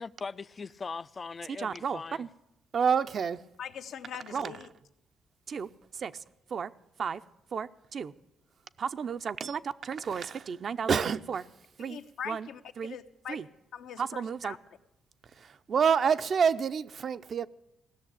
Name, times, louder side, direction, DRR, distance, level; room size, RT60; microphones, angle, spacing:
voice 1, 0.0-2.3, left 4 dB, 35° left, 0.4 m, -40 dB
voice 2, 1.6-2.3 2.7-3.4 4.3-4.5 5.5-5.7 6.0-6.1 6.5-6.7 7.0-7.2 7.5-8.1 8.8-11.4 11.8-12.0 12.3-12.5 12.8-13.0 13.3-13.4 14.0-14.5 15.7-17.5, right 6 dB, 50° right, 0.5 m, -29 dB
voice 3, 3.6-4.7 11.8-14.6, left 8 dB, 75° left, 0.9 m, -42 dB
16.5 x 6.6 x 10.0 m
cardioid pair, 90°, 0 cm